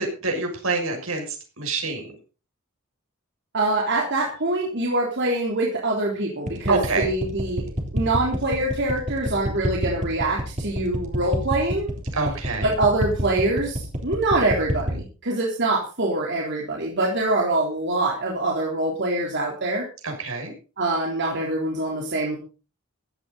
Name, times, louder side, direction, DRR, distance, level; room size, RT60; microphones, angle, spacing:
voice 1, 0.0-2.2 6.7-7.1 12.1-12.7 20.0-20.5, right 3 dB, 80° right, 2 dB, 6.4 m, -26 dB
voice 2, 3.5-11.9 12.6-19.8 20.8-22.4, right 2 dB, 55° right, -2 dB, 3.6 m, -24 dB
sound 1, 6.5-15.0, equal, 35° right, 3.6 m, -26 dB
16.0 x 13.0 x 4.1 m, 0.35 s
head